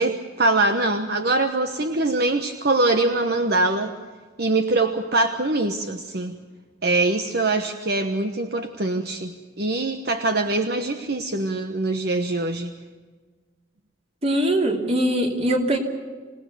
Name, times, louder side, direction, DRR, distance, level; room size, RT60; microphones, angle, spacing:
voice 1, 0.0-3.9 4.4-6.4 6.8-12.7, right 2 dB, 55° right, 7 dB, 1.1 m, -23 dB
voice 2, 14.2-15.8, right 1 dB, 30° right, 2 dB, 3.0 m, -21 dB
27.0 x 18.5 x 6.8 m, 1.4 s
head